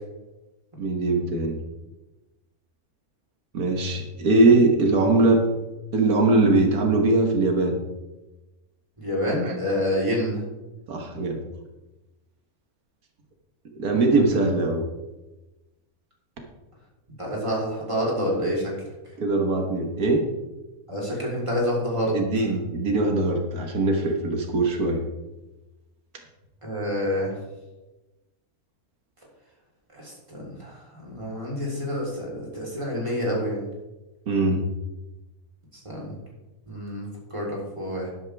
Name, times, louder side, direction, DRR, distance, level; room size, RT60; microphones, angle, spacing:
voice 1, 0.8-1.6 3.5-5.4 5.9-7.8 9.3-9.6 10.9-11.4 13.8-14.8 19.2-20.2 22.1-25.0 34.3-34.7, right 2 dB, 90° right, 3 dB, 1.9 m, -21 dB
voice 2, 9.0-10.4 17.2-18.7 20.9-22.2 26.6-27.4 29.9-33.7 35.8-36.1 36.7-38.1, equal, 20° right, -4 dB, 3.9 m, -28 dB
12.5 x 11.5 x 3.5 m, 1.1 s
omnidirectional pair, 1.5 m